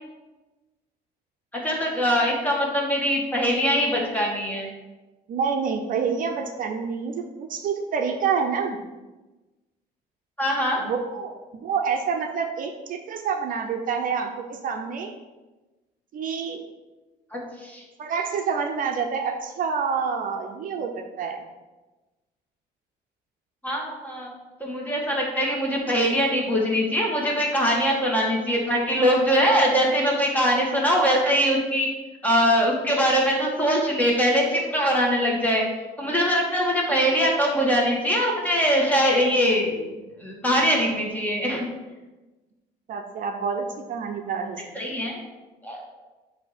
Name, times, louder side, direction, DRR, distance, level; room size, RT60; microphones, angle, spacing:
voice 1, 1.6-4.7 10.4-10.8 17.3-17.8 23.6-24.3 24.6-31.9 32.2-35.6 36.0-39.9 40.2-41.7 44.8-45.2 45.6-45.8, equal, 10° left, -2 dB, 1.6 m, -22 dB
voice 2, 5.3-8.8 10.8-15.1 16.1-16.6 18.0-21.4 42.9-44.6, right 6 dB, 55° right, 4 dB, 0.6 m, -27 dB
7.6 x 2.8 x 5.0 m, 1.1 s
cardioid pair, 110°, 17 cm